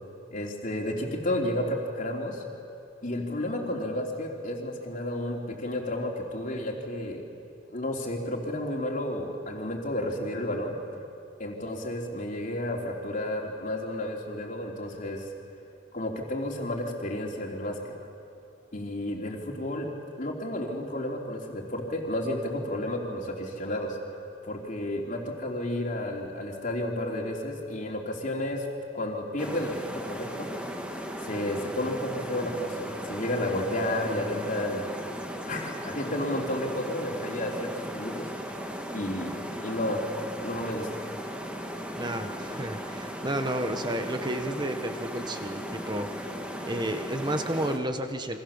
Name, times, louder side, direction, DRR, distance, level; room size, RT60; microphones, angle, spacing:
voice 1, 0.3-2.4 3.0-7.2 7.7-10.8 11.4-15.3 15.9-17.9 18.7-19.9 20.2-24.0 24.4-28.7 28.9-30.5 31.2-34.9 35.5-38.3 38.9-40.1 40.4-40.9, left 1 dB, 40° left, 0 dB, 3.4 m, -32 dB
sound 1, 29.4-47.8, equal, 5° right, 1.9 m, -37 dB
voice 2, 41.9-46.4 46.7-48.4, right 1 dB, 20° right, 7 dB, 1.5 m, -31 dB
29.0 x 25.0 x 7.3 m, 2.6 s
head